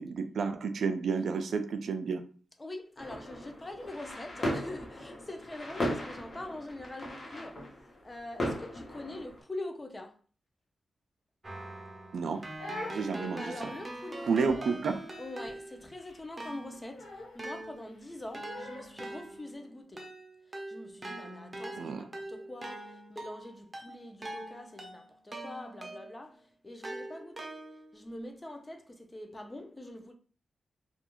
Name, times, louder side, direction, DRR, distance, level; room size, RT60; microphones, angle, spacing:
voice 1, 0.0-2.2 12.1-12.4 12.9-13.5 14.3-15.0 21.8-22.0, right 5 dB, 80° right, 0.3 m, -31 dB
voice 2, 2.6-10.2 13.2-14.7 15.2-20.1 20.5-27.6 27.9-30.1, left 1 dB, 20° left, 0.5 m, -44 dB
sound 1, 3.0-9.4, equal, 50° left, 0.9 m, -37 dB
Keyboard (musical), 11.4-16.0 16.4-26.3 26.8-28.0, right 1 dB, 30° right, 0.6 m, -44 dB
Crying sobbing, 12.2-19.1, left 1 dB, 85° left, 0.8 m, -46 dB
2.3 x 2.3 x 2.9 m
wide cardioid pair, 95°, 0 cm